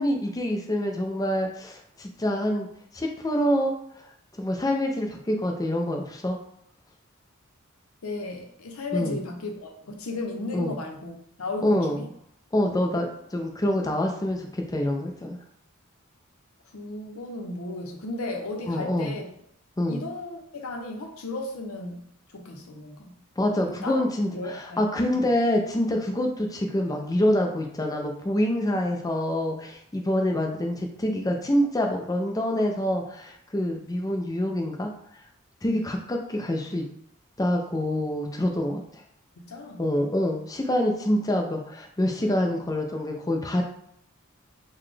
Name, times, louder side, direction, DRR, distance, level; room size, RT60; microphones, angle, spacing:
voice 1, 0.0-2.7 2.9-3.7 4.4-6.4 8.9-9.2 10.5-10.7 11.6-12.0 12.5-13.1 13.3-15.4 18.7-19.1 19.8-20.0 23.4-34.9 35.6-36.8 37.4-39.0 39.8-43.6, left 1 dB, 15° left, 2 dB, 0.4 m, -26 dB
voice 2, 8.0-12.1 16.7-19.3 19.9-22.0 22.3-23.1 23.5-24.0 24.3-25.3 35.7-35.8 39.4-39.9, left 2 dB, 80° left, 3 dB, 0.6 m, -35 dB
4.0 x 2.2 x 3.2 m, 0.69 s
head